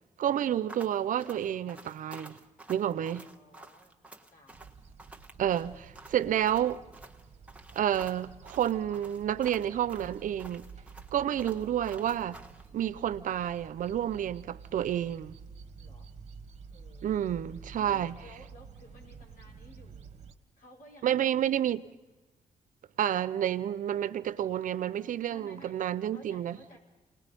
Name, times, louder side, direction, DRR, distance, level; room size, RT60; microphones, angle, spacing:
voice 1, 0.2-2.4 2.7-3.3 5.4-6.8 7.7-10.6 11.1-12.4 12.7-15.4 17.0-18.2 21.0-21.8 23.0-26.8, right 10 dB, 75° right, 0.7 m, -30 dB
sound 1, 0.7-12.7, right 2 dB, 10° right, 1.4 m, -50 dB
voice 2, 3.0-4.0 4.3-4.6 6.1-6.4 15.8-16.1 16.7-17.4 17.7-20.1 20.6-21.4 25.3-25.8 26.1-26.8, left 1 dB, 80° left, 5.7 m, -55 dB
sound 2, 4.5-20.3, right 5 dB, 55° right, 1.3 m, -50 dB
28.0 x 19.5 x 5.3 m
cardioid pair, 90°, 14 cm